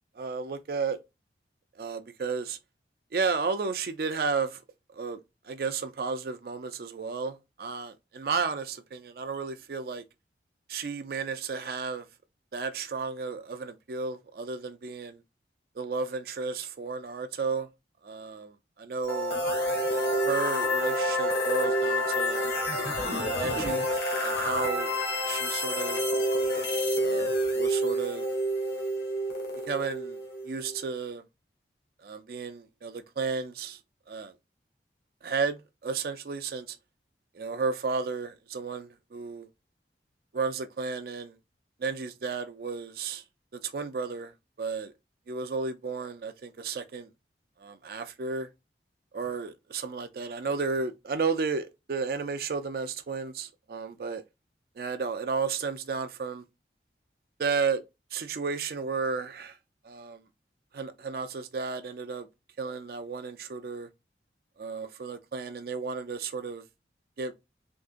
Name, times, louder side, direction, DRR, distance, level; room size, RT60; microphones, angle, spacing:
voice 1, 0.2-1.0 1.8-2.6 3.1-4.6 4.9-10.0 10.7-12.1 12.5-15.2 15.8-17.7 18.0-19.4 20.2-22.5 23.1-23.9 24.2-24.9 25.3-26.0 27.0-28.3 29.7-30.2 30.4-31.2 32.0-33.8 34.1-34.3 35.2-36.8 37.3-39.5 40.3-41.4 41.8-43.2 43.5-44.3 44.6-44.9 45.3-47.1 47.6-48.5 49.1-54.2 54.8-56.4 57.4-57.8 58.1-59.6 59.8-60.2 60.7-62.3 62.6-63.9 64.6-66.6 67.2-67.3, right 4 dB, 55° right, 0.4 m, -33 dB
sound 1, 19.0-30.9, equal, 70° left, 1.0 m, -28 dB
3.6 x 2.8 x 2.5 m
head